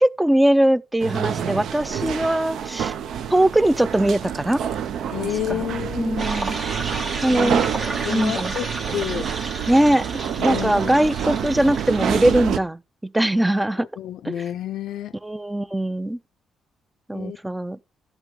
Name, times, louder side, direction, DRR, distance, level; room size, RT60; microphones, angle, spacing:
voice 1, 0.0-2.9 3.3-4.6 5.2-5.6 6.0-6.6 7.2-7.7 8.1-8.5 9.7-10.0 10.4-12.8 13.1-13.9 14.2-14.4 15.2-16.2 17.1-17.8, right 1 dB, 10° right, 0.4 m, -21 dB
sound 1, 1.0-12.6, right 8 dB, 70° right, 0.6 m, -28 dB
voice 2, 5.1-6.5 7.3-9.3 10.4-11.0 13.8-15.1 17.1-17.4, left 11 dB, 75° left, 0.4 m, -30 dB
sound 2, 6.2-12.3, right 2 dB, 50° right, 2.2 m, -32 dB
11.5 x 8.0 x 3.7 m
cardioid pair, 90°, 0 cm